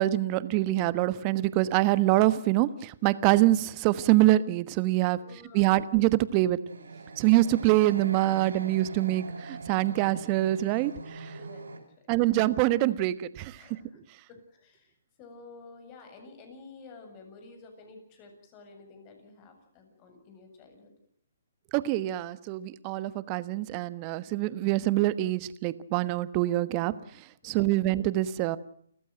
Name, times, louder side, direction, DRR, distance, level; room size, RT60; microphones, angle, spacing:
voice 1, 0.0-5.2 5.5-6.6 7.2-11.3 12.1-13.8 21.7-26.9 27.4-28.6, right 16 dB, 30° right, 16 dB, 1.2 m, -25 dB
voice 2, 5.2-5.8 11.4-11.8 13.6-14.0 14.3-20.9 27.4-27.9, left 3 dB, 30° left, 6 dB, 7.6 m, -51 dB
sound 1, 6.7-11.8, right 4 dB, 80° right, 4.4 m, -42 dB
29.5 x 15.0 x 7.7 m, 0.65 s
hypercardioid pair, 135°, 0 cm